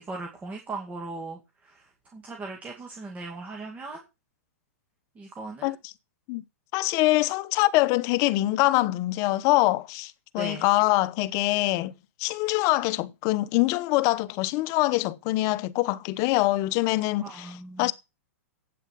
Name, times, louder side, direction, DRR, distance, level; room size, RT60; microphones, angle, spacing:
voice 1, 0.0-4.0 5.2-5.7 7.2-7.3 10.4-10.6 17.2-17.9, right 3 dB, 15° right, 2.3 m, -38 dB
voice 2, 5.6-5.9 6.3-6.4 6.7-11.9 12.2-17.9, left 19 dB, 40° left, 0.9 m, -24 dB
8.6 x 7.6 x 7.3 m
hypercardioid pair, 130°, 8 cm